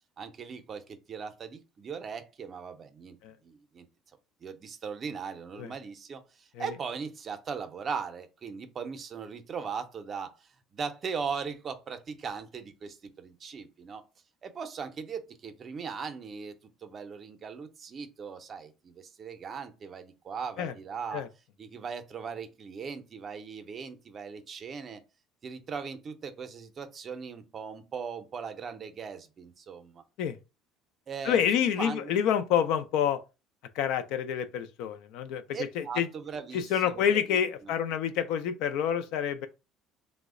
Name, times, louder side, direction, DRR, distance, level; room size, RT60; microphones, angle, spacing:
voice 1, 0.2-3.2 3.4-3.9 4.4-14.1 14.4-16.5 16.8-21.2 21.6-25.0 25.4-30.0 31.1-31.4 31.8-32.1 35.5-37.7, right 6 dB, 35° right, 0.5 m, -39 dB
voice 2, 31.2-33.2 33.8-35.4 35.7-36.1 36.5-39.5, left 8 dB, 75° left, 0.4 m, -28 dB
3.1 x 2.1 x 3.6 m
cardioid pair, 130°, 0 cm